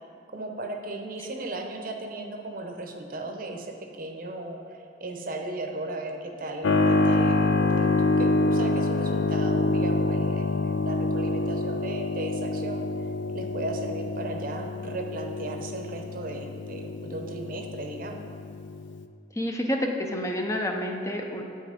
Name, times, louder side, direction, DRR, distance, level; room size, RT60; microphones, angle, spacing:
voice 1, 0.3-12.9 13.3-18.3, right 2 dB, 55° right, 3 dB, 0.8 m, -36 dB
Keyboard (musical), 6.6-19.0, left 2 dB, 85° left, 0.4 m, -26 dB
voice 2, 19.4-21.4, left 1 dB, 15° left, 2 dB, 0.6 m, -29 dB
8.5 x 5.5 x 5.1 m, 2.5 s
head